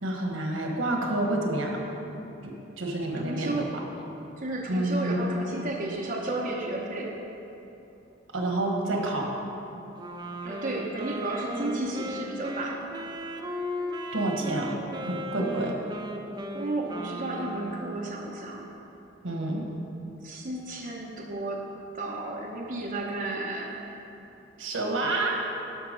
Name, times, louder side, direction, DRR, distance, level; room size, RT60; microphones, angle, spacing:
voice 1, 0.0-1.8 2.4-3.8 4.7-5.3 8.3-9.3 14.1-14.8 15.0-15.7 19.2-19.7 24.6-25.4, right 2 dB, 85° right, 1 dB, 1.4 m, -28 dB
voice 2, 3.2-3.7 4.4-7.1 10.4-12.8 16.5-18.7 20.2-21.6 21.9-23.9, right 2 dB, 45° right, -2 dB, 0.9 m, -33 dB
Wind instrument woodwind instrument, 10.0-18.2, equal, 20° right, 0.6 m, -36 dB
11.5 x 5.9 x 5.2 m, 3.0 s
head